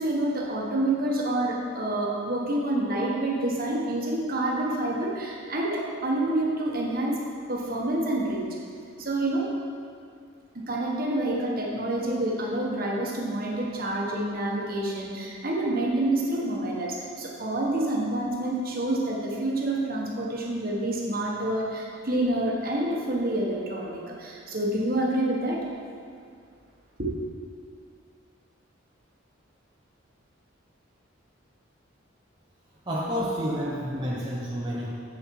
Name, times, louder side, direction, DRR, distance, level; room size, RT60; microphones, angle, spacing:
voice 1, 0.0-7.2 7.5-8.5 9.0-9.5 10.5-25.6 27.0-27.1, right 1 dB, 45° right, -2 dB, 1.3 m, -28 dB
voice 2, 32.9-34.9, equal, 20° right, -6 dB, 0.8 m, -29 dB
7.6 x 6.8 x 4.7 m, 2.2 s
head